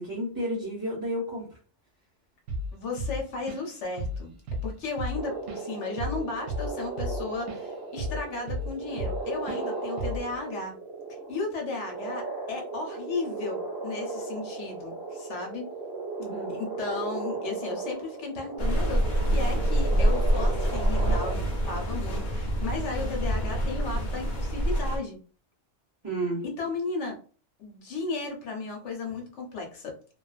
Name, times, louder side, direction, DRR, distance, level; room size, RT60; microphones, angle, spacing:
voice 1, 0.0-1.5 16.2-16.5 26.0-26.4, right 1 dB, 20° right, -8 dB, 0.8 m, -31 dB
Drum kit / Drum, 2.5-2.7 3.0-3.7 4.0-4.2 4.5-7.6 8.0-9.2 9.5-9.7 10.0-10.3, equal, 85° right, 0.9 m, -33 dB
voice 2, 2.7-4.3 4.6-10.7 11.3-15.7 16.5-25.2 26.6-27.2 27.6-29.9, left 3 dB, 75° left, 0 dB, 1.1 m, -35 dB
sound 1, 5.2-21.3, right 3 dB, 65° right, 1.0 m, -36 dB
sound 2, 18.6-25.0, right 1 dB, 45° left, 0.8 m, -26 dB
2.5 x 2.3 x 2.4 m, 0.41 s
omnidirectional pair, 1.2 m